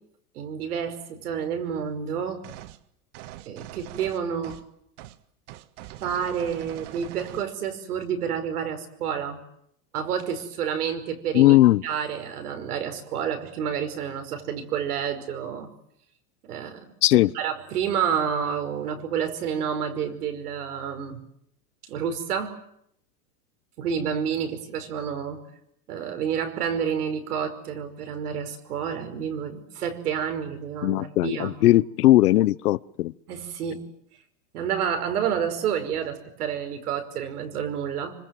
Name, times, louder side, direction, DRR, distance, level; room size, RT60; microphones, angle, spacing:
voice 1, 0.4-2.5 3.5-4.6 6.0-9.4 9.9-11.6 11.8-15.7 16.4-16.9 17.3-21.2 21.9-22.6 23.8-25.4 25.9-31.6 33.3-33.9 34.5-38.1, right 8 dB, 90° right, 5.4 m, -29 dB
sound 1, 2.4-2.8 3.1-4.7 5.0-5.2 5.5-7.5, right 14 dB, 55° right, 1.7 m, -42 dB
voice 2, 11.3-11.8 17.0-17.3 30.8-33.1, left 16 dB, 90° left, 1.0 m, -18 dB
26.0 x 25.5 x 7.7 m
supercardioid pair, 150°, 44 cm